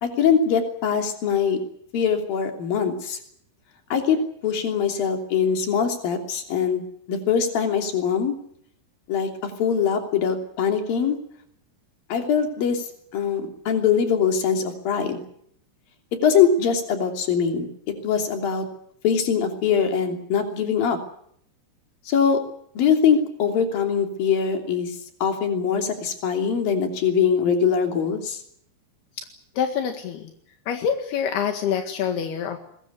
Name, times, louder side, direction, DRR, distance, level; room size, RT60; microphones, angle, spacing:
voice 1, 0.0-1.6 1.9-3.2 3.9-6.8 7.1-8.3 9.1-11.2 12.1-12.9 13.1-15.2 16.2-17.7 18.0-18.7 19.0-21.0 22.1-22.4 22.7-25.0 25.2-28.4, left 7 dB, 65° left, 4 dB, 4.8 m, -22 dB
voice 2, 29.6-30.3 30.7-32.6, left 8 dB, 80° left, 5 dB, 3.9 m, -26 dB
24.0 x 21.5 x 8.3 m, 0.67 s
omnidirectional pair, 4.5 m